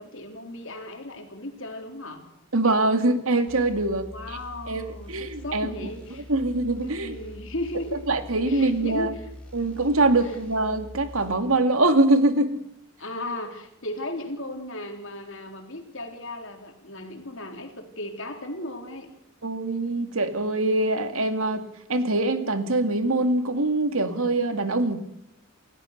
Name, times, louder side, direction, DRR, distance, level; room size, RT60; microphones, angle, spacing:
voice 1, 0.0-2.2 4.1-6.3 6.7-8.0 8.5-9.3 13.0-19.1, left 1 dB, 60° left, 4 dB, 3.8 m, -36 dB
voice 2, 2.5-4.1 4.7-5.7 6.3-7.2 8.1-9.1 9.5-12.6 19.4-21.6 21.9-25.0, right 2 dB, 75° right, 8 dB, 2.3 m, -23 dB
sound 1, 3.5-11.4, equal, 5° left, 4.4 m, -44 dB
29.0 x 16.0 x 6.7 m, 0.76 s
head